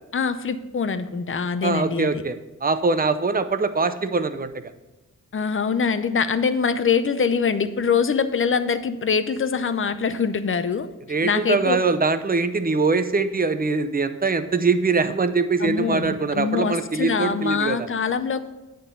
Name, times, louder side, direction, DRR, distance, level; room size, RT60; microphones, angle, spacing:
voice 1, 0.1-2.1 5.3-10.9 11.2-11.8 15.6-18.4, left 6 dB, 40° left, 12 dB, 0.6 m, -24 dB
voice 2, 1.6-4.5 11.1-17.9, right 4 dB, 30° right, 11 dB, 0.6 m, -23 dB
8.9 x 3.9 x 6.8 m, 1.1 s
cardioid pair, 60°, 32 cm